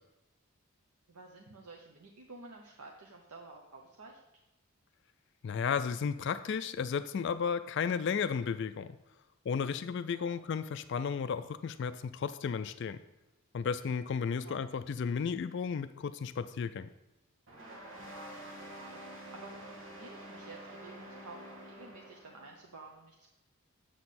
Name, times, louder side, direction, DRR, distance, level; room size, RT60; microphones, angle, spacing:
voice 1, 1.1-4.2 10.1-10.4 14.4-14.6 18.1-23.3, right 3 dB, 90° right, 0 dB, 0.8 m, -52 dB
voice 2, 5.4-9.0 9.5-13.0 13.5-16.9, left 6 dB, 50° left, 12 dB, 0.3 m, -33 dB
sound 1, 17.5-22.6, right 1 dB, 55° right, 1.7 m, -48 dB
7.7 x 6.4 x 4.2 m, 0.96 s
head